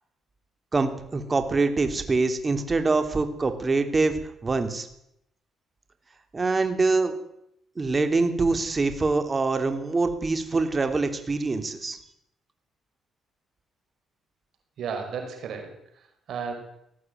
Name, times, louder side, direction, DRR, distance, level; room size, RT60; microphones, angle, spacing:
voice 1, 0.7-4.9 6.3-7.1 7.8-12.0, right 3 dB, 30° right, 8 dB, 3.3 m, -24 dB
voice 2, 14.8-16.5, right 6 dB, 70° right, 4 dB, 5.3 m, -34 dB
19.5 x 14.0 x 9.4 m, 0.77 s
cardioid pair, 90°, 0 cm